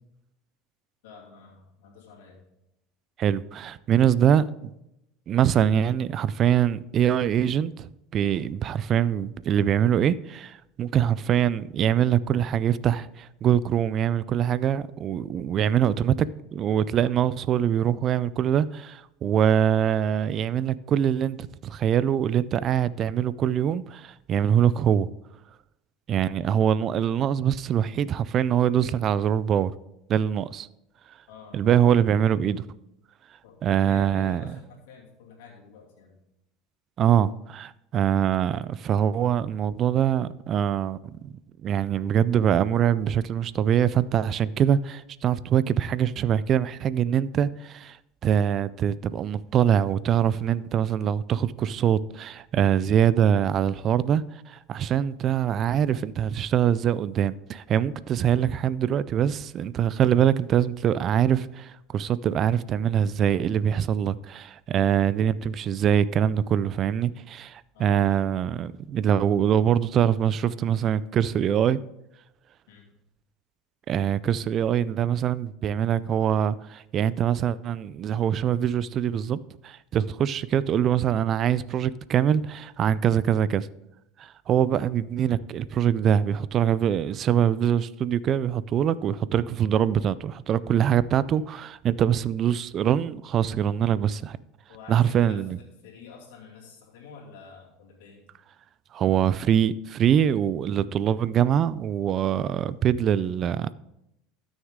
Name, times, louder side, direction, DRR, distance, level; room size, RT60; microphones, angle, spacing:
voice 1, 1.0-2.4 31.3-31.8 33.4-36.2 67.7-68.2 72.7-72.9 94.7-98.3, left 5 dB, 85° left, 2.5 m, -48 dB
voice 2, 3.2-4.7 5.3-25.1 26.1-29.7 30.1-30.7 31.5-32.6 33.6-34.4 37.0-41.3 41.6-48.0 48.2-71.8 73.9-79.4 79.6-83.7 84.2-94.4 94.9-95.6 98.9-103.7, right 9 dB, 40° right, 0.4 m, -23 dB
13.0 x 6.3 x 3.7 m
supercardioid pair, 120°, 0 cm